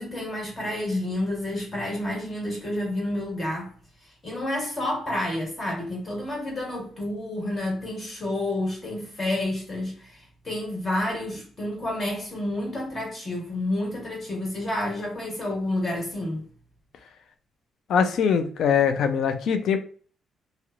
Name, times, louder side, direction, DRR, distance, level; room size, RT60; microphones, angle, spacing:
voice 1, 0.0-3.7 4.2-16.4, left 1 dB, 35° left, 1.5 m, -29 dB
voice 2, 17.9-19.8, left 7 dB, 70° left, 0.4 m, -22 dB
2.8 x 2.0 x 2.4 m
cardioid pair, 90°, 0 cm